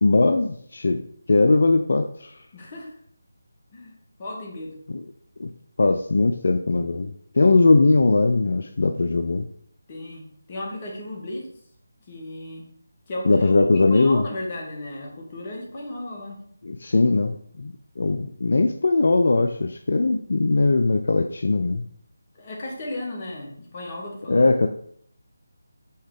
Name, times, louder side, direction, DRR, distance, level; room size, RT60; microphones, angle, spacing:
voice 1, 0.0-1.0 1.3-2.4 5.4-5.5 5.8-9.5 13.3-14.2 16.6-21.8 24.3-24.7, left 3 dB, 60° left, 7 dB, 0.4 m, -20 dB
voice 2, 2.5-2.9 3.7-3.9 4.2-4.8 9.9-11.5 12.1-12.7 13.1-16.4 22.3-24.5, left 1 dB, 30° left, -1 dB, 1.6 m, -35 dB
5.6 x 3.7 x 4.9 m, 0.64 s
figure-of-eight pair, 160°, 0 cm